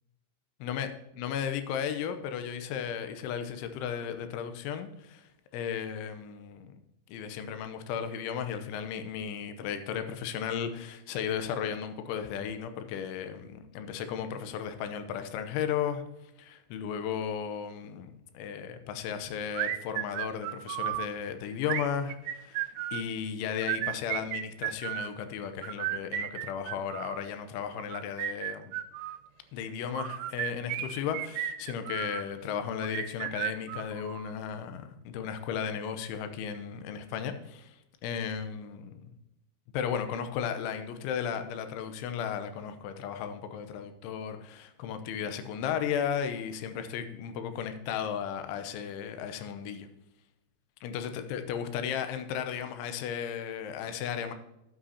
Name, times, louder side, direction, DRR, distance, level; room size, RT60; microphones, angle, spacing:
voice 1, 1.2-5.3 5.5-6.8 7.1-16.0 16.4-28.7 29.5-37.8 38.0-39.1 39.7-49.9 50.8-54.3, left 8 dB, 90° left, 8 dB, 3.2 m, -35 dB
sound 1, 19.5-21.1 21.6-23.1 23.6-25.1 25.6-27.2 27.8-29.2 29.9-32.3 32.8-34.3, right 13 dB, 90° right, 3.0 m, -34 dB
12.5 x 8.9 x 2.8 m, 0.91 s
omnidirectional pair, 5.4 m